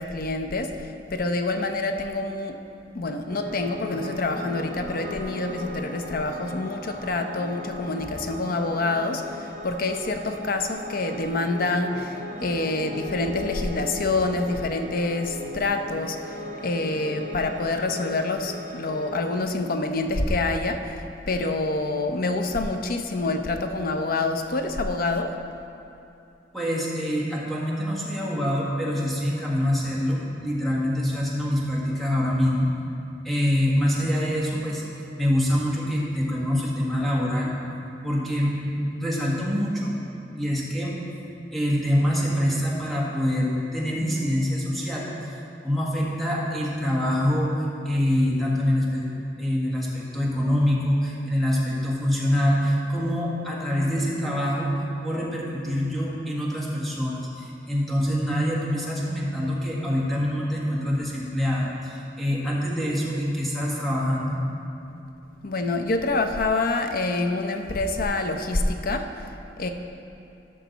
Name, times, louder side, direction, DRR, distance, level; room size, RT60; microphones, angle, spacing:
voice 1, 0.0-2.6 2.9-25.3 65.4-69.7, left 2 dB, 55° left, 6 dB, 0.6 m, -27 dB
Piano, 3.3-19.4, left 1 dB, 45° right, 1.7 m, -38 dB
voice 2, 26.5-32.7 33.2-34.8 35.2-37.5 38.0-40.0 40.3-40.9 41.5-45.1 45.6-47.5 47.8-49.1 49.4-54.7 55.0-64.4, equal, ahead, -6 dB, 1.5 m, -25 dB
12.0 x 5.9 x 4.1 m, 2.8 s
head